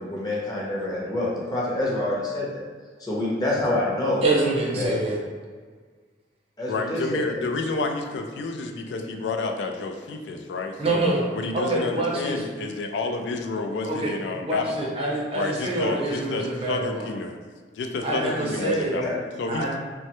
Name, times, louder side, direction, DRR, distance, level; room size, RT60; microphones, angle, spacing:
voice 1, 0.0-2.6 3.0-4.2 4.7-5.0 6.6-7.4 18.6-19.2, left 1 dB, 20° left, -5 dB, 0.6 m, -27 dB
voice 2, 4.2-5.2 10.8-11.3 11.5-12.4 13.8-14.1 14.4-17.1 18.0-19.0 19.5-19.8, right 2 dB, 35° right, -4 dB, 0.6 m, -26 dB
voice 3, 6.7-11.0 11.3-14.9 15.3-17.3 17.8-19.8, left 3 dB, 75° left, 5 dB, 0.3 m, -30 dB
3.1 x 2.2 x 2.9 m, 1.6 s
head